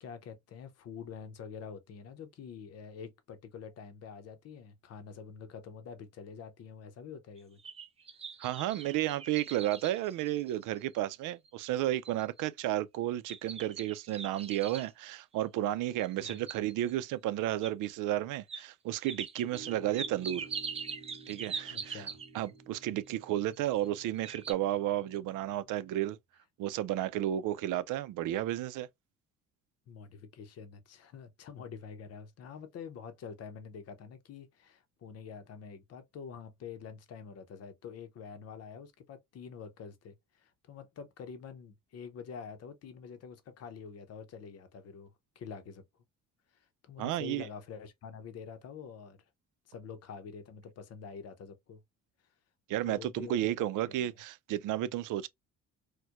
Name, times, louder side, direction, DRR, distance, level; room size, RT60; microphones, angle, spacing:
voice 1, 0.0-7.6 16.2-16.4 21.7-22.2 29.9-45.8 46.8-49.2 49.7-51.8 52.8-54.1, left 6 dB, 55° left, 0.7 m, -46 dB
sound 1, 7.4-10.9 11.5-11.6 12.0-12.4 13.3-14.9 15.9-16.9 17.6-17.7 18.5-18.6 19.1-22.5 23.5-24.0 24.2-24.5, right 5 dB, 20° right, 0.4 m, -42 dB
voice 2, 8.4-20.5 21.3-22.1 22.3-26.2 26.6-28.9 47.0-47.4 52.7-55.3, right 13 dB, 85° right, 0.5 m, -32 dB
sound 2, 19.5-25.9, right 3 dB, 65° right, 0.9 m, -53 dB
4.4 x 2.2 x 2.4 m
cardioid pair, 165°, 31 cm